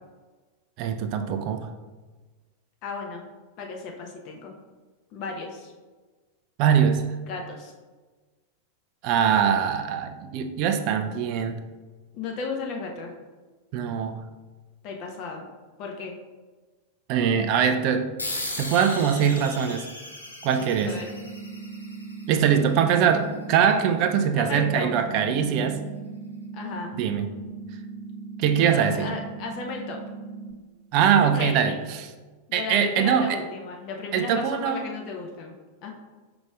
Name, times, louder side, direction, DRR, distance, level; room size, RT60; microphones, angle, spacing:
voice 1, 0.8-1.7 6.6-7.0 9.0-11.6 13.7-14.2 17.1-18.1 18.6-19.9 20.4-21.0 22.3-25.8 26.9-27.3 28.4-29.1 30.9-32.1 32.5-33.4 34.1-34.9, right 8 dB, 45° right, 7 dB, 0.4 m, -22 dB
voice 2, 2.8-3.3 3.6-4.5 5.1-5.7 7.3-7.7 12.1-13.1 14.8-15.5 15.8-16.1 20.9-21.1 24.3-24.9 26.5-26.9 28.5-30.0 31.2-31.9 32.5-35.5 35.8-35.9, left 4 dB, 40° left, 1 dB, 0.7 m, -35 dB
sound 1, 18.2-23.2, left 1 dB, 80° left, 0.6 m, -37 dB
sound 2, 20.5-30.5, right 5 dB, 70° right, 1.2 m, -39 dB
5.0 x 3.9 x 2.4 m, 1.3 s
figure-of-eight pair, 90°, 0 cm